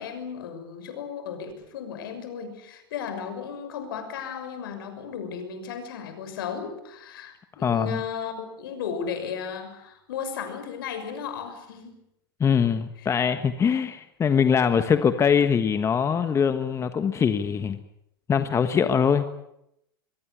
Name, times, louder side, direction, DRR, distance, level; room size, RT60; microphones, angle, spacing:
voice 1, 0.0-12.0 13.0-13.1, left 7 dB, 70° left, 9 dB, 6.4 m, -35 dB
voice 2, 12.4-17.8 18.3-19.3, left 7 dB, 25° left, 10 dB, 1.4 m, -22 dB
23.5 x 22.5 x 8.3 m, 0.81 s
hypercardioid pair, 95°, 12 cm